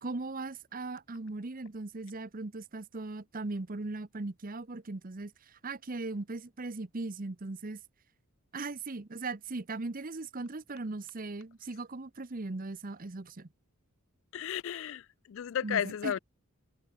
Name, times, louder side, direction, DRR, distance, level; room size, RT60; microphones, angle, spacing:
voice 1, 0.0-7.8 8.5-13.5 15.6-16.1, right 3 dB, 40° right, 0.8 m, -39 dB
voice 2, 14.3-16.2, left 9 dB, 60° left, 0.3 m, -33 dB
head